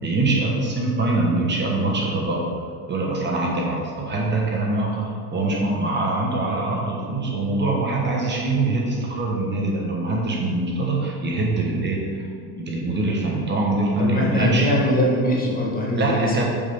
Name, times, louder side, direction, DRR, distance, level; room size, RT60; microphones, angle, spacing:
voice 1, 0.0-2.5 2.9-12.2 12.5-14.7 16.0-16.4, right 2 dB, 25° right, -1 dB, 1.3 m, -23 dB
voice 2, 14.0-16.4, left 1 dB, 20° left, -2 dB, 1.2 m, -22 dB
9.5 x 7.3 x 3.6 m, 2.3 s
supercardioid pair, 140°, 47 cm